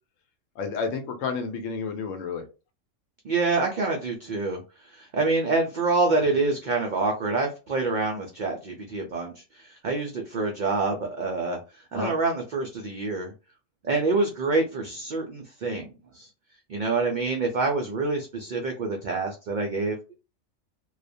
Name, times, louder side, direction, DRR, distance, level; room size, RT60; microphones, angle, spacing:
voice 1, 0.6-2.4 11.9-12.1, left 5 dB, 80° left, 6 dB, 1.0 m, -30 dB
voice 2, 3.2-4.6 4.9-9.3 9.7-11.6 11.9-13.3 13.8-16.3 16.7-20.1, right 3 dB, 75° right, 2 dB, 0.4 m, -26 dB
2.3 x 2.1 x 2.5 m, 0.31 s
omnidirectional pair, 1.3 m